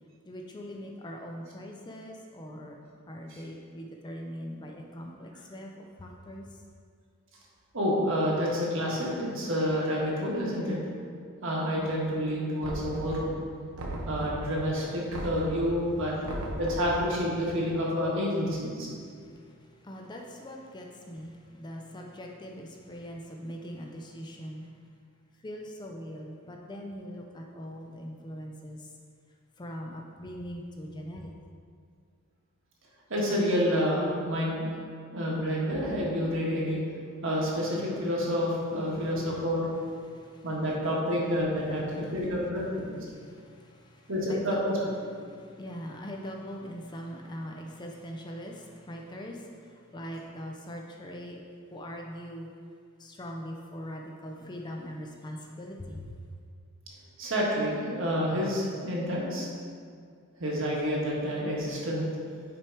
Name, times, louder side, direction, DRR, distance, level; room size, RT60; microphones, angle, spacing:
voice 1, 0.3-2.8 3.1-6.4 19.8-24.6 25.4-28.8 29.6-31.3 40.2-40.5 43.1-44.0 44.3-44.6 45.4-49.4 49.9-51.4 51.7-52.5 53.0-56.2, equal, 20° left, 1 dB, 0.4 m, -41 dB
voice 2, 7.7-10.8 11.4-13.3 14.0-16.1 16.6-18.9 33.1-34.7 35.1-36.8 37.2-39.7 40.4-42.9 44.1-44.8 57.2-59.5 60.4-62.1, equal, 60° right, -4 dB, 1.5 m, -29 dB
Knock, 12.6-13.4 13.8-14.6 15.1-15.7 16.2-17.0, right 1 dB, 80° right, 0.9 m, -36 dB
6.0 x 4.7 x 4.5 m, 2.2 s
head